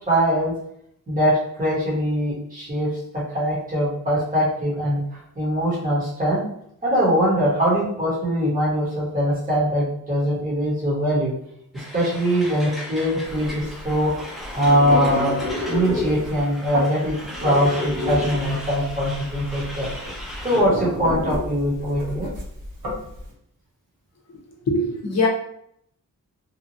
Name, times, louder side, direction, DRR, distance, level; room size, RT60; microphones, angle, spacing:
voice 1, 0.1-0.5 1.1-5.0 5.3-6.4 6.8-11.3 11.7-14.1 14.5-15.3 15.7-19.9 20.4-22.3, equal, 25° right, -7 dB, 1.1 m, -22 dB
Truck, 11.7-20.6, equal, ahead, 0.7 m, -37 dB
sound 1, 13.3-23.2, left 2 dB, 90° right, 1.0 m, -30 dB
voice 2, 24.7-25.3, left 2 dB, 50° left, 1 dB, 0.7 m, -22 dB
2.9 x 2.3 x 2.7 m, 0.70 s
wide cardioid pair, 135°, 34 cm